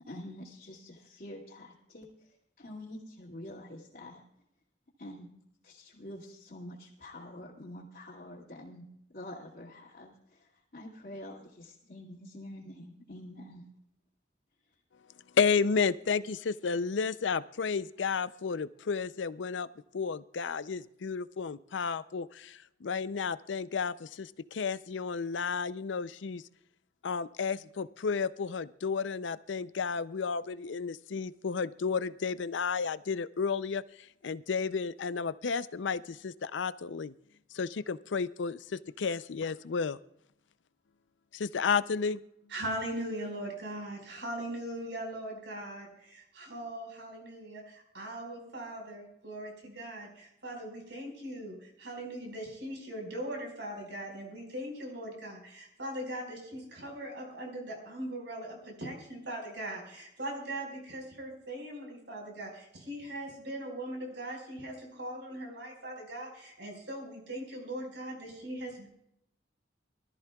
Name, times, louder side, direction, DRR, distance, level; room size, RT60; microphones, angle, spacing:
voice 1, 0.1-2.1 2.6-4.2 5.0-5.3 5.6-8.8 9.1-13.7, left 1 dB, 55° left, -7 dB, 2.3 m, -46 dB
voice 2, 15.3-19.7 19.9-26.4 27.0-33.8 34.2-37.1 37.5-40.0 41.3-42.2, left 5 dB, 80° left, 16 dB, 0.5 m, -32 dB
voice 3, 42.5-68.9, right 1 dB, 75° right, 1 dB, 4.8 m, -40 dB
24.0 x 13.5 x 2.3 m, 0.77 s
head